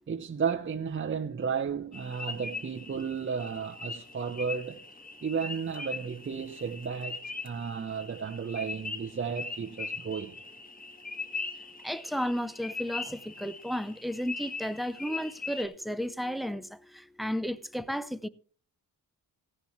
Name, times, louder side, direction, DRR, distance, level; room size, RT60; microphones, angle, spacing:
voice 1, 0.1-4.8 5.2-10.4, right 6 dB, 30° right, 0.8 m, -33 dB
sound 1, 1.9-15.6, left 4 dB, 20° left, 2.0 m, -41 dB
voice 2, 11.8-16.7 17.2-18.3, equal, ahead, 0.6 m, -33 dB
16.0 x 10.5 x 3.2 m
cardioid pair, 100°, 41 cm